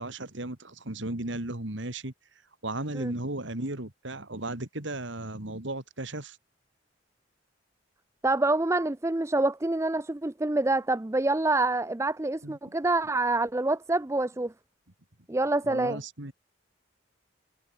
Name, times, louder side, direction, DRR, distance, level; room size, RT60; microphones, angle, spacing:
voice 1, 0.0-2.1 2.6-6.4 12.4-12.6 15.6-16.3, right 2 dB, 70° right, 2.7 m, -35 dB
voice 2, 8.2-14.5 15.3-16.0, right 2 dB, 15° right, 0.5 m, -26 dB
head